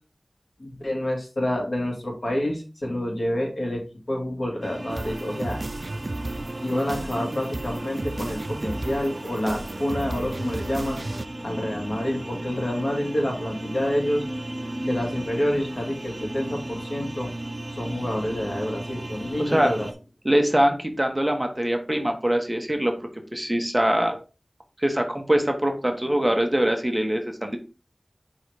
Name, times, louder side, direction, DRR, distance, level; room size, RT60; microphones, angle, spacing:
voice 1, 0.6-5.6 6.6-11.0 11.4-14.3 14.8-17.3 17.8-19.9 24.0-24.1, left 1 dB, 65° left, 0 dB, 2.3 m, -28 dB
sound 1, 4.6-19.9, right 1 dB, 35° right, 1.4 m, -36 dB
sound 2, 4.9-11.3, right 2 dB, 55° right, 0.5 m, -33 dB
voice 2, 19.4-19.7 20.2-22.9 23.3-24.2 24.8-27.6, right 1 dB, 15° right, 4 dB, 1.4 m, -23 dB
5.6 x 4.0 x 4.8 m, 0.33 s
wide cardioid pair, 50°, 0 cm